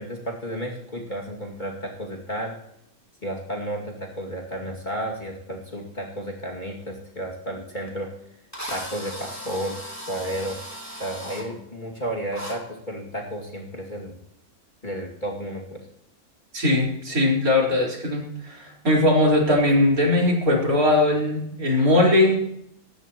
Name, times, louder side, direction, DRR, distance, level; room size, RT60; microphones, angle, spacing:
voice 1, 0.0-2.5 3.2-8.1 8.7-9.8 10.1-10.6 11.0-14.2 14.8-15.8, right 1 dB, 30° left, -1 dB, 2.5 m, -32 dB
Drill, 7.9-8.0 8.5-11.5 12.3-12.6, equal, 10° left, 3.3 m, -36 dB
voice 2, 16.5-22.4, left 1 dB, 75° right, -2 dB, 4.9 m, -20 dB
19.0 x 15.0 x 3.0 m, 0.76 s
omnidirectional pair, 1.5 m